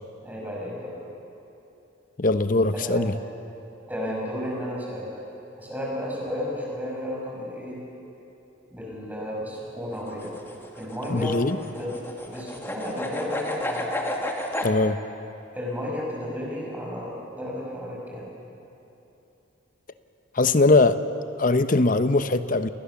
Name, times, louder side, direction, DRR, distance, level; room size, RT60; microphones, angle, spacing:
voice 1, 0.2-0.9 2.7-3.0 3.9-5.1 5.6-7.8 8.7-10.3 10.8-11.4 11.8-13.9 15.5-18.2, left 1 dB, 10° right, -3 dB, 6.2 m, -33 dB
voice 2, 2.2-3.1 11.1-11.6 14.6-15.0 20.3-21.0 21.4-22.7, left 2 dB, 45° left, 11 dB, 0.9 m, -21 dB
sound 1, 10.0-14.7, left 1 dB, 10° left, 2.1 m, -32 dB
29.5 x 20.0 x 7.1 m, 3.0 s
head